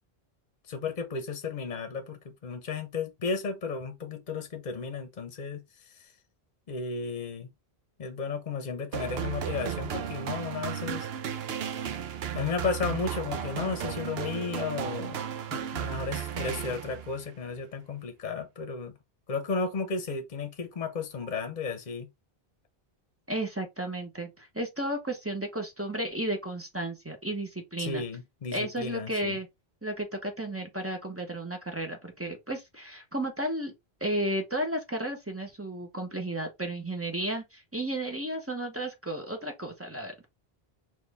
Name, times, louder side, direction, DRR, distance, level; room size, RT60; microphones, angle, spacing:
voice 1, 0.7-5.6 6.7-7.5 8.0-11.1 12.3-15.2 15.5-18.9 19.3-22.1 27.8-29.4, left 4 dB, 45° left, 0.9 m, -34 dB
sound 1, 8.9-17.2, right 8 dB, 75° right, 0.9 m, -34 dB
voice 2, 23.3-28.0 28.5-29.5 29.8-33.7 34.0-40.3, right 1 dB, 15° right, 0.9 m, -33 dB
4.2 x 2.6 x 3.4 m
omnidirectional pair, 1.0 m